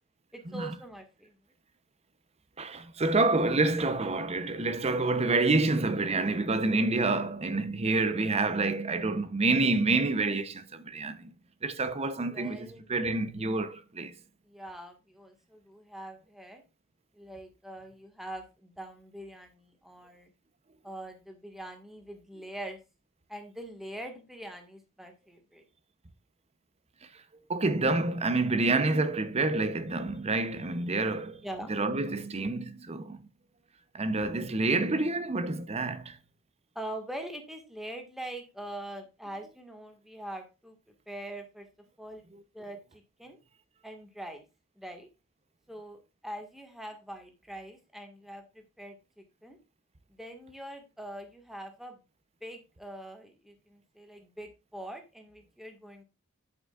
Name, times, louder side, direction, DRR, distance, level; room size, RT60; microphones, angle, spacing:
voice 1, 0.3-1.3 12.3-13.7 14.4-16.6 17.1-20.3 20.8-22.8 23.3-25.6 31.4-31.7 36.8-40.8 41.1-41.7 42.0-42.2 42.5-43.4 43.8-44.4 44.8-45.1 45.7-49.6 50.1-52.0 52.4-56.0, right 1 dB, ahead, 1.7 m, -43 dB
voice 2, 2.6-11.3 11.6-14.1 27.5-31.4 31.7-33.2 33.9-36.2, right 3 dB, 30° right, 0.7 m, -28 dB
8.0 x 7.9 x 2.4 m
head